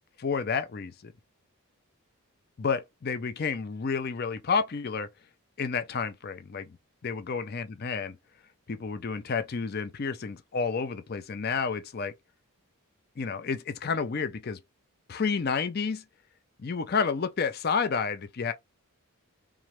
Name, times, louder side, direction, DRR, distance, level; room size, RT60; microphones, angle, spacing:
voice 1, 0.2-1.1 2.6-5.1 5.6-6.8 7.0-8.2 8.7-12.1 13.2-14.6 15.1-16.0 16.6-18.5, left 5 dB, 45° left, 0.5 m, -30 dB
3.6 x 3.1 x 3.0 m
head